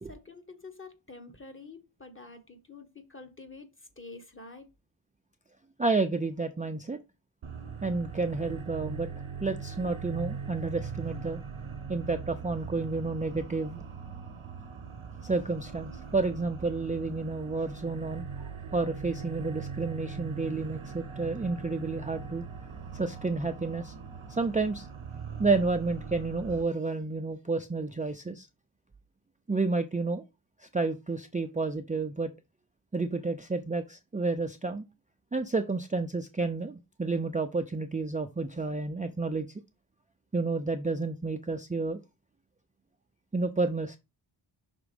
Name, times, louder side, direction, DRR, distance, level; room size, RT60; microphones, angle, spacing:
voice 1, 0.1-3.7 4.0-4.7, left 3 dB, 25° left, 1.3 m, -47 dB
voice 2, 5.8-7.0 7.8-9.1 9.4-11.4 11.9-13.8 15.2-22.4 22.9-23.9 24.3-24.9 25.4-28.5 29.5-30.2 30.6-32.3 32.9-34.9 35.3-39.5 40.3-42.0 43.3-44.0, right 3 dB, 15° right, 0.4 m, -30 dB
sound 1, 7.4-26.6, right 6 dB, 75° right, 0.9 m, -41 dB
6.0 x 3.7 x 5.2 m
wide cardioid pair, 85°, 48 cm